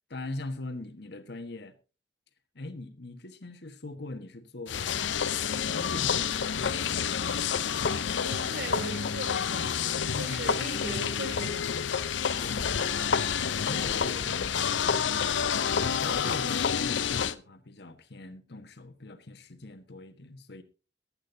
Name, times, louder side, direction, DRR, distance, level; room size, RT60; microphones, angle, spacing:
voice 1, 0.1-1.7 2.5-5.1 5.5-7.2 12.3-12.9 13.4-15.5 15.7-20.6, left 2 dB, 65° left, 1.4 m, -42 dB
sound 1, 4.7-17.3, left 7 dB, 85° left, 0.6 m, -29 dB
voice 2, 8.2-9.8 10.1-11.7, right 1 dB, 60° right, 3.0 m, -39 dB
22.5 x 8.8 x 2.7 m
head